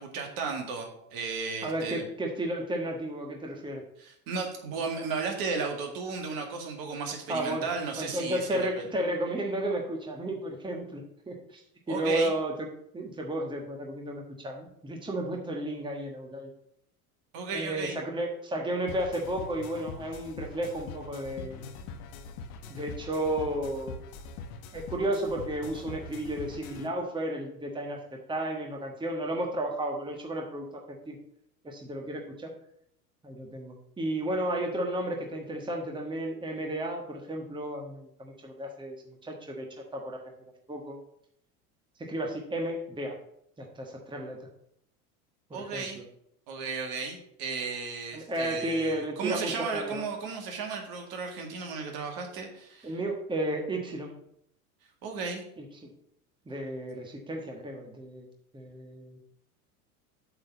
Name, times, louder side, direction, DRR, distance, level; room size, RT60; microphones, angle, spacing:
voice 1, 0.0-2.1 4.0-8.7 11.9-12.3 17.3-18.0 45.5-46.0 46.5-52.9 55.0-55.4, right 4 dB, 50° right, 3 dB, 2.1 m, -34 dB
voice 2, 1.6-3.8 7.3-7.7 8.0-11.6 11.9-12.7 12.9-16.5 17.5-21.7 22.7-24.0 24.7-31.1 31.6-32.5 33.2-39.7 39.9-40.2 40.7-41.0 42.0-43.2 43.6-44.5 45.5-46.0 48.1-50.1 52.8-54.2 55.6-55.9 56.5-58.3 58.5-59.2, right 1 dB, 10° right, 1 dB, 1.4 m, -33 dB
sound 1, 18.9-26.9, left 4 dB, 55° left, 1.2 m, -43 dB
8.0 x 4.0 x 6.9 m, 0.71 s
hypercardioid pair, 85°, 45 cm